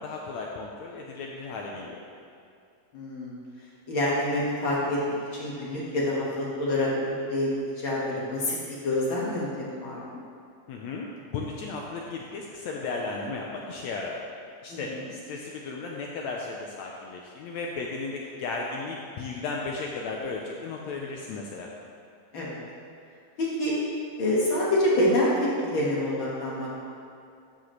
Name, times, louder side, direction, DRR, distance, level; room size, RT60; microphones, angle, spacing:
voice 1, 0.0-2.0 10.7-14.2 14.6-21.7, left 3 dB, 80° left, -1 dB, 1.6 m, -35 dB
voice 2, 2.9-3.3 3.9-10.2 14.7-15.0 22.3-22.6 23.4-23.7 24.2-26.8, left 1 dB, 50° left, -6 dB, 1.7 m, -27 dB
13.0 x 7.3 x 3.2 m, 2.5 s
omnidirectional pair, 3.9 m